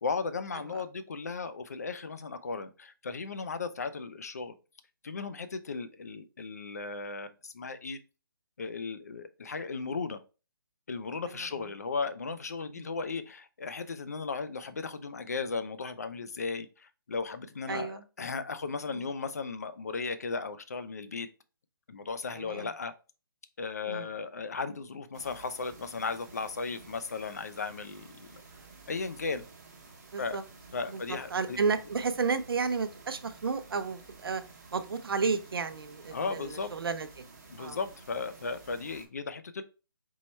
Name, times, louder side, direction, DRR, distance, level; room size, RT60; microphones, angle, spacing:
voice 1, 0.0-4.6 5.0-8.0 8.6-10.2 10.9-21.3 21.9-22.9 23.6-28.4 28.9-29.4 30.2-30.4 30.7-31.6 36.1-36.7 37.5-39.6, left 4 dB, 45° left, 11 dB, 0.4 m, -36 dB
voice 2, 17.7-18.0 18.9-19.0 22.3-22.7 23.8-24.1 30.1-30.4 30.9-34.4 34.7-37.2 37.6-37.8, right 5 dB, 75° right, 9 dB, 0.6 m, -32 dB
sound 1, 25.1-39.1, right 4 dB, 45° right, 1.0 m, -52 dB
4.5 x 2.1 x 4.1 m, 0.32 s
hypercardioid pair, 180°, 12 cm